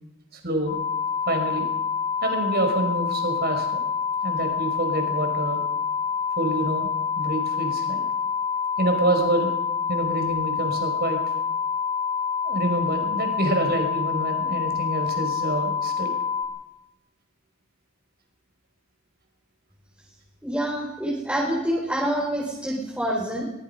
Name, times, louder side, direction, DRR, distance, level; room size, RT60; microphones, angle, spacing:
voice 1, 0.4-0.8 1.3-1.7 2.2-3.8 4.2-5.6 6.4-6.9 7.2-8.0 8.8-9.5 9.9-11.2 12.4-16.1, right 1 dB, 50° right, 4 dB, 5.3 m, -26 dB
sound 1, 0.6-16.4, left 6 dB, 55° left, 5.4 m, -27 dB
voice 2, 20.4-23.4, right 1 dB, 5° right, -3 dB, 4.0 m, -26 dB
23.0 x 20.5 x 5.8 m, 0.93 s
head